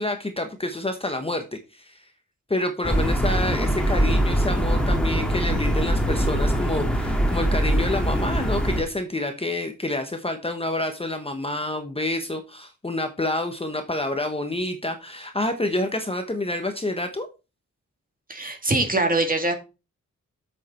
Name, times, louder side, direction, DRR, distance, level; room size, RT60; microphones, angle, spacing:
voice 1, 0.0-2.0 2.5-17.3, left 2 dB, 20° left, 6 dB, 1.0 m, -28 dB
sound 1, 2.8-8.8, right 1 dB, 5° left, 1.8 m, -22 dB
voice 2, 18.3-19.5, right 2 dB, 30° right, 4 dB, 2.3 m, -23 dB
8.2 x 6.6 x 4.3 m, 0.29 s
wide cardioid pair, 115°, 30 cm